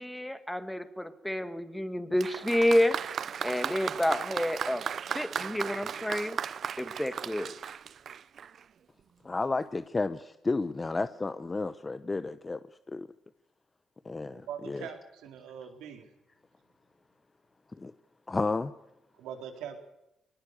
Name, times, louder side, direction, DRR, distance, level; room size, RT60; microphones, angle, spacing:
voice 1, 0.0-3.0 3.4-4.8 5.1-6.4 6.8-7.5, left 1 dB, 5° left, 1.9 m, -29 dB
Applause, 2.2-8.7 9.6-9.7, right 7 dB, 55° right, 0.7 m, -36 dB
voice 2, 9.2-12.6 12.9-13.1 14.1-14.4 14.7-14.9 17.8-17.9 18.3-18.7, left 3 dB, 25° left, 0.9 m, -31 dB
voice 3, 14.3-16.0 19.2-19.8, right 8 dB, 90° right, 4.0 m, -42 dB
21.5 x 19.5 x 6.8 m
cardioid pair, 90°, 0 cm